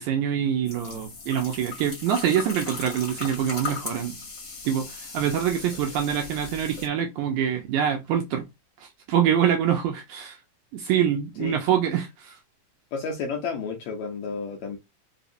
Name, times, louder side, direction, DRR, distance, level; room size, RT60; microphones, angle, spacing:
voice 1, 0.0-4.1 4.7-8.4 9.1-10.4 10.7-12.4, right 9 dB, 80° right, 1.8 m, -25 dB
sound 1, 0.6-6.9, left 4 dB, 40° left, 2.0 m, -38 dB
voice 2, 12.9-14.8, left 5 dB, 75° left, 1.6 m, -31 dB
5.3 x 2.8 x 2.6 m
omnidirectional pair, 3.9 m